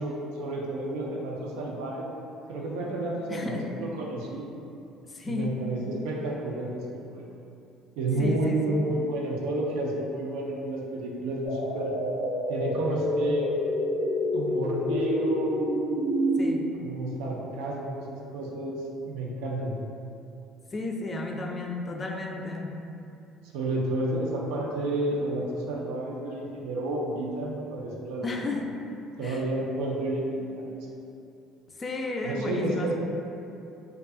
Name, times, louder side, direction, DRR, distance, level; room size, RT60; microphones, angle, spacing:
voice 1, 0.0-2.1 2.5-4.5 5.3-7.2 8.0-11.9 12.5-13.5 14.3-15.6 16.8-19.8 23.5-28.3 29.2-30.9 32.2-32.9, right 1 dB, 80° right, -2 dB, 0.3 m, -31 dB
voice 2, 3.3-3.7 5.1-5.6 8.2-8.8 16.4-16.7 20.7-22.8 28.2-28.7 29.2-29.5 31.7-32.9, left 2 dB, 30° left, 2 dB, 0.3 m, -33 dB
sound 1, 11.4-16.5, equal, 85° left, 0.6 m, -27 dB
2.5 x 2.3 x 2.4 m, 2.7 s
supercardioid pair, 80°, 0 cm